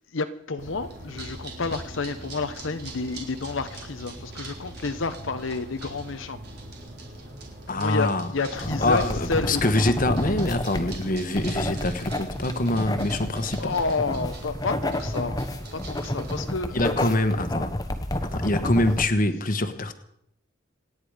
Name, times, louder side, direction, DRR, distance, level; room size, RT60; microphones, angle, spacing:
voice 1, 0.1-6.4 7.7-9.8 13.6-16.8, left 3 dB, 80° left, 0.9 m, -30 dB
sound 1, 0.6-16.6, right 2 dB, 55° right, 4.2 m, -42 dB
voice 2, 7.7-8.3 8.8-13.7 16.7-17.8 18.3-19.9, left 1 dB, 45° left, 1.3 m, -24 dB
sound 2, 8.6-19.1, left 1 dB, 20° left, 1.2 m, -30 dB
28.0 x 9.9 x 5.0 m
head